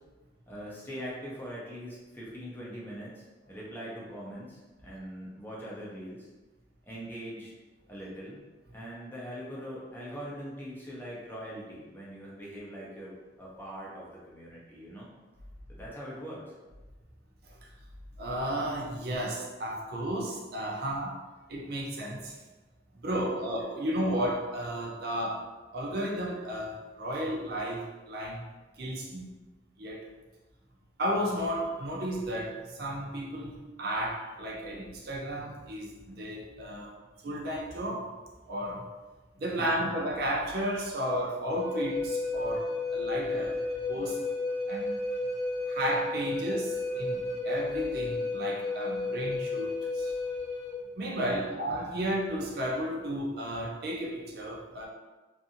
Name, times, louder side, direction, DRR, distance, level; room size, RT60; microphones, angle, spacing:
voice 1, 0.5-6.3 6.8-7.5 7.9-8.4 8.7-15.1 15.7-16.5 23.1-23.3 51.3-51.5, equal, 10° left, -6 dB, 0.6 m, -42 dB
voice 2, 18.2-21.2 21.5-22.4 22.9-28.5 28.8-29.3 29.8-30.1 31.0-36.9 37.2-38.1 38.5-38.8 39.4-43.6 43.9-44.2 44.7-44.9 45.7-50.1 51.0-54.9, equal, 55° right, -2 dB, 0.5 m, -33 dB
Wind instrument woodwind instrument, 41.5-50.8, left 2 dB, 65° left, 0.7 m, -32 dB
2.6 x 2.5 x 2.7 m, 1.2 s
head